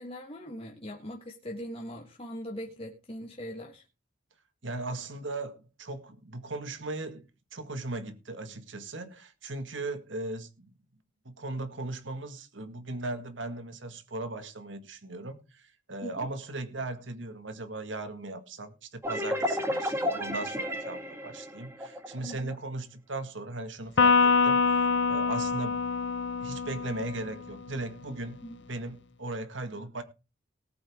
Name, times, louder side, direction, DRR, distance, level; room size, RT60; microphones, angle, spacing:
voice 1, 0.0-3.8 16.0-16.3 22.2-22.6 28.4-28.6, equal, 30° left, 1.4 m, -41 dB
voice 2, 4.6-10.7 11.3-25.8 26.4-28.4 28.7-30.0, right 2 dB, 70° right, 1.8 m, -38 dB
sound 1, 19.0-22.6, equal, 15° right, 2.0 m, -32 dB
Electric guitar, 24.0-27.5, left 4 dB, 65° left, 0.7 m, -25 dB
19.0 x 7.9 x 3.6 m
head